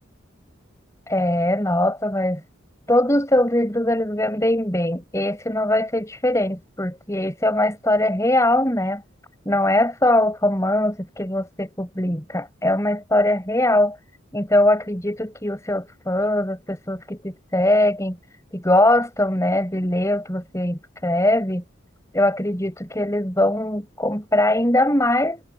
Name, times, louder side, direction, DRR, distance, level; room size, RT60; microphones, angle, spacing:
voice 1, 1.1-2.4 2.9-9.0 9.5-14.0 14.3-18.2 18.5-21.6 22.1-25.4, left 1 dB, 15° left, 6.1 m, -21 dB
head